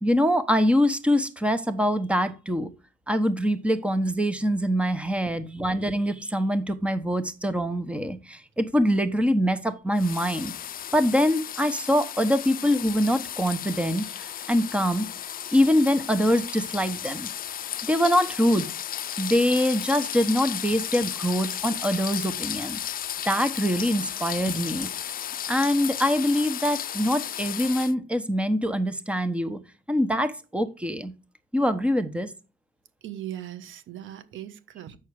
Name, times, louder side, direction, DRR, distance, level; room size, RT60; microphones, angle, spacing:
voice 1, 0.0-2.7 3.1-10.5 10.9-15.1 15.5-17.3 17.8-18.7 19.2-22.8 23.3-24.9 25.5-29.6 29.9-31.1 31.5-32.3, equal, 5° right, 1.1 m, -24 dB
sound 1, 10.0-27.9, left 10 dB, 45° left, 0.5 m, -34 dB
voice 2, 33.0-35.0, right 12 dB, 80° right, 1.3 m, -39 dB
8.3 x 6.4 x 4.8 m
cardioid pair, 90°, 20 cm